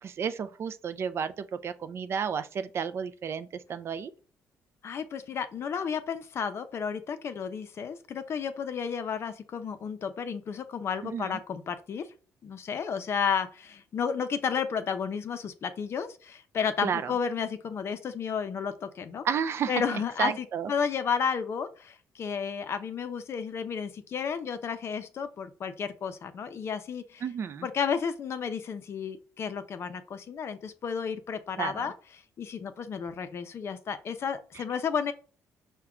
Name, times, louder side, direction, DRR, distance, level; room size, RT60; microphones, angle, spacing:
voice 1, 0.0-4.1 11.0-11.4 16.8-17.1 19.2-19.8 20.2-20.7 27.2-27.7 31.6-31.9 34.6-34.7, right 7 dB, 45° right, 0.3 m, -32 dB
voice 2, 4.8-12.1 12.4-19.2 19.7-27.2 27.6-31.9 32.4-35.1, left 6 dB, 45° left, 0.5 m, -32 dB
5.8 x 2.2 x 3.6 m
cardioid pair, 145°, 6 cm